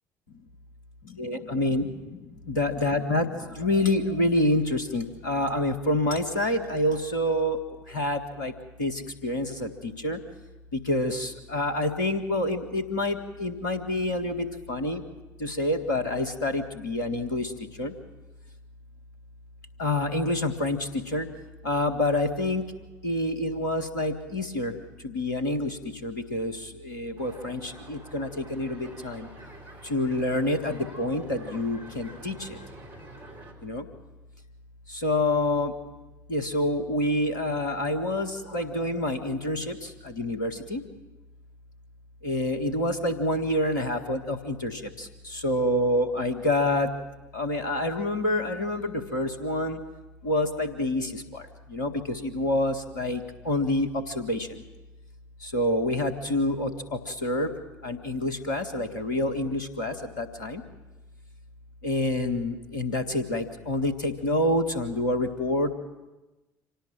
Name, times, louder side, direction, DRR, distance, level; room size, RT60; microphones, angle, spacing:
voice 1, 1.0-7.6 7.9-8.5 8.8-10.2 10.7-15.0 15.4-17.9 19.8-21.3 21.6-22.6 23.0-29.3 29.8-32.6 33.6-33.9 34.9-35.7 36.3-40.8 42.2-46.9 47.3-49.8 50.2-54.6 55.4-57.5 57.8-60.6 61.8-65.7, left 1 dB, 75° left, 9 dB, 1.7 m, -27 dB
sound 1, 27.2-33.5, right 1 dB, 55° right, 4.3 m, -47 dB
26.0 x 18.0 x 7.6 m, 1.1 s
figure-of-eight pair, 50°, 10 cm